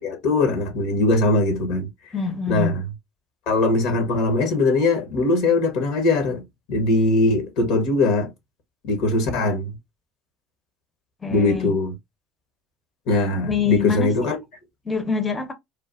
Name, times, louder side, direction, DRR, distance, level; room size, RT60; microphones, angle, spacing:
voice 1, 0.0-1.9 2.5-2.9 3.5-6.4 6.7-8.3 8.8-9.7 11.3-11.9 13.1-14.4, left 2 dB, 60° left, 0.9 m, -21 dB
voice 2, 2.1-2.8 11.2-11.7 13.4-14.1 14.9-15.5, left 5 dB, 20° left, 0.7 m, -25 dB
3.2 x 2.3 x 2.3 m
hypercardioid pair, 65°, 0 cm